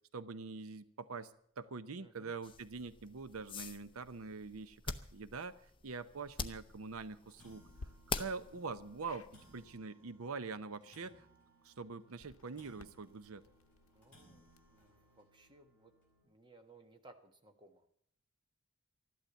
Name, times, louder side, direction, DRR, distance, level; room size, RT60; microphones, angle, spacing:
voice 1, 0.1-5.5 5.8-7.6 8.2-11.3 11.6-13.4, right 4 dB, 85° right, 13 dB, 0.7 m, -44 dB
sound 1, 1.0-1.2 1.6-1.7 2.2-2.3 3.3-3.4 3.9-4.0 4.5-4.6 5.1-5.2 6.2-6.4 6.8-6.9 7.1-16.2, right 1 dB, 5° left, 7.9 m, -66 dB
voice 2, 2.0-2.3 8.4-8.6 13.9-15.9 16.2-17.9, right 2 dB, 20° right, 5 dB, 1.3 m, -62 dB
sound 2, 2.4-9.8, left 5 dB, 25° left, 0.7 m, -46 dB
sound 3, 6.4-6.7 7.7-7.9 9.0-9.3 12.1-14.9, left 2 dB, 75° left, 0.8 m, -57 dB
13.5 x 12.0 x 8.0 m, 0.67 s
head